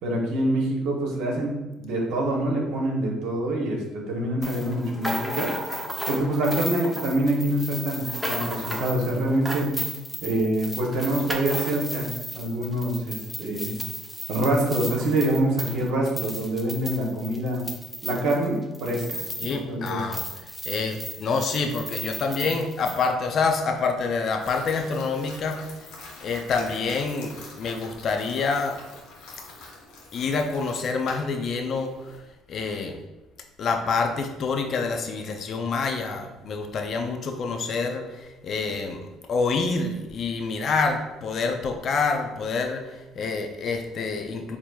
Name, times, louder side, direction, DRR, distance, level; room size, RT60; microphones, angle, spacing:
voice 1, 0.0-5.5 6.1-9.7 10.2-13.7 14.3-17.6 18.0-20.0 22.4-22.5, right 1 dB, 75° right, 0 dB, 0.9 m, -26 dB
sound 1, 4.4-19.6 19.9-23.1, equal, ahead, 0.6 m, -34 dB
voice 2, 19.4-25.7 26.2-28.8 30.1-32.2 32.5-33.0 33.6-39.0 39.3-44.6, left 4 dB, 55° left, 4 dB, 0.4 m, -27 dB
sound 2, 24.2-32.2, left 3 dB, 75° left, 1.0 m, -45 dB
4.3 x 2.8 x 2.3 m, 1.1 s
supercardioid pair, 75°, 0 cm